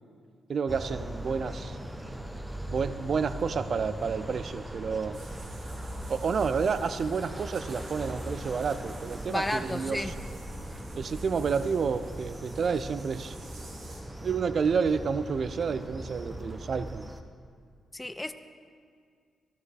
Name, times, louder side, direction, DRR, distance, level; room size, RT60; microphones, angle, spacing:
voice 1, 0.5-1.8 2.7-5.2 6.1-10.1 10.9-13.4 14.2-17.1, right 5 dB, 55° right, 13 dB, 0.3 m, -30 dB
sound 1, 0.7-17.2, equal, 10° right, 0.8 m, -39 dB
sound 2, 5.1-14.0, right 3 dB, 75° right, 1.6 m, -52 dB
voice 2, 9.3-10.1 17.9-18.3, left 1 dB, 15° left, 9 dB, 0.4 m, -32 dB
13.5 x 11.0 x 3.3 m, 2.1 s
cardioid pair, 65°, 0 cm